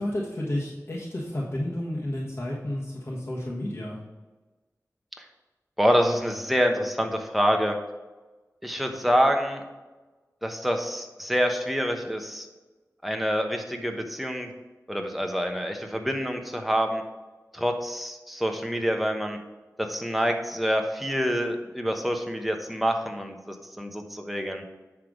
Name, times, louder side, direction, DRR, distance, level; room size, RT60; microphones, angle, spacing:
voice 1, 0.0-4.0, left 1 dB, 40° left, -5 dB, 1.4 m, -31 dB
voice 2, 5.8-7.7 8.6-9.6 10.4-12.5 13.0-14.5 14.9-17.0 17.5-19.4 19.8-24.6, equal, ahead, 3 dB, 1.0 m, -26 dB
10.0 x 3.5 x 5.0 m, 1.2 s
wide cardioid pair, 55°, 6 cm